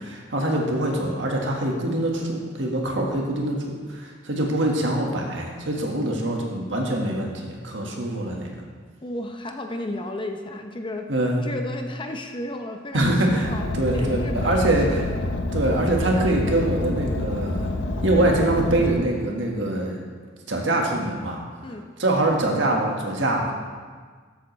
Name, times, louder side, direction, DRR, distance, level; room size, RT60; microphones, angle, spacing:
voice 1, 0.0-8.6 11.1-11.4 12.9-15.1 15.5-17.7 18.0-20.0 20.5-21.4 22.0-23.5, right 1 dB, 70° right, 0 dB, 1.6 m, -24 dB
voice 2, 9.0-11.1 11.4-15.0 21.6-21.9, left 1 dB, 25° left, 4 dB, 0.7 m, -33 dB
Car, 13.4-18.9, left 2 dB, 70° left, 0.8 m, -27 dB
13.0 x 7.8 x 3.2 m, 1.5 s
head